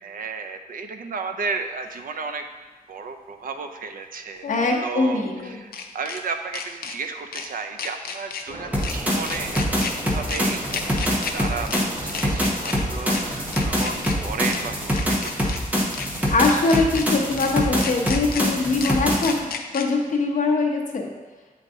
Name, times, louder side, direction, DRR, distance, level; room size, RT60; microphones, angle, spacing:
voice 1, 0.0-2.5 2.9-4.5 4.8-15.6, right 4 dB, 70° right, 7 dB, 0.5 m, -33 dB
sound 1, 1.9-2.0 4.4-6.2 6.5-6.9 7.3-7.5 7.8-8.4 8.8-8.9 9.3-9.9 10.3-10.4 10.7-11.3 11.7-11.8 12.1-12.7 13.1-13.2 13.5-14.1 14.5-14.6 14.9-15.6 15.9-16.1 16.4-17.0 17.4-17.5 17.8-18.4 18.8-18.9 19.2-19.8, left 6 dB, 85° left, 0.5 m, -32 dB
voice 2, 4.5-5.6 16.3-21.1, left 3 dB, 60° left, 0 dB, 0.9 m, -22 dB
sound 2, 8.4-14.7, equal, 45° right, 1.9 m, -38 dB
sound 3, 8.7-19.4, equal, 10° right, 0.9 m, -25 dB
7.7 x 4.0 x 3.6 m, 1.3 s
wide cardioid pair, 170°, 15 cm